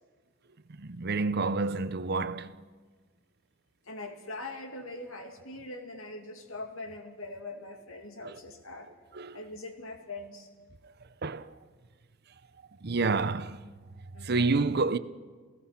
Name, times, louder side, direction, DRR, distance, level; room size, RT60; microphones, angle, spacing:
voice 1, 0.8-2.5 8.2-8.3 9.1-9.4 11.2-11.5 12.8-13.6 14.2-15.0, right 3 dB, 50° right, 0.8 m, -28 dB
voice 2, 3.9-8.9 9.3-10.5 14.1-14.6, left 2 dB, 80° left, 2.3 m, -42 dB
29.0 x 17.0 x 5.9 m
head